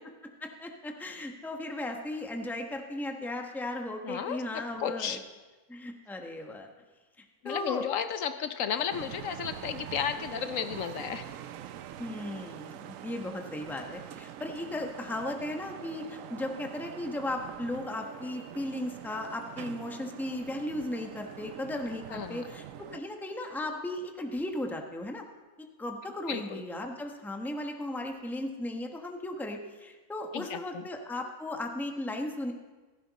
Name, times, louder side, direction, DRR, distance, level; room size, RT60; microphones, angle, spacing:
voice 1, 0.4-5.2 5.7-6.7 7.4-7.9 12.0-25.2 25.8-32.5, left 1 dB, ahead, 3 dB, 1.0 m, -36 dB
voice 2, 4.0-5.2 7.4-11.2 22.1-22.4 26.3-26.6 30.3-30.8, left 8 dB, 70° left, 9 dB, 1.0 m, -33 dB
sound 1, 8.9-23.0, right 10 dB, 75° right, 1.0 m, -44 dB
16.0 x 14.5 x 4.1 m, 1.2 s
omnidirectional pair, 1.5 m